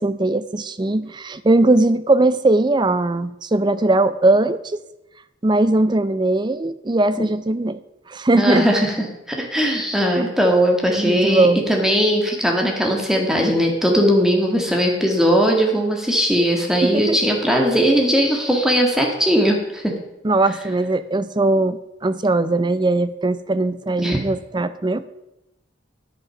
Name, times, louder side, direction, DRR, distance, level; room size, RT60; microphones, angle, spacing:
voice 1, 0.0-4.8 5.4-7.8 8.1-8.7 10.2-10.3 11.0-11.6 16.8-17.2 20.2-25.1, right 2 dB, 25° right, 14 dB, 0.5 m, -19 dB
voice 2, 8.3-8.9 9.3-19.9 24.0-24.2, equal, 5° right, 1 dB, 1.9 m, -19 dB
10.5 x 7.8 x 5.9 m, 0.92 s
head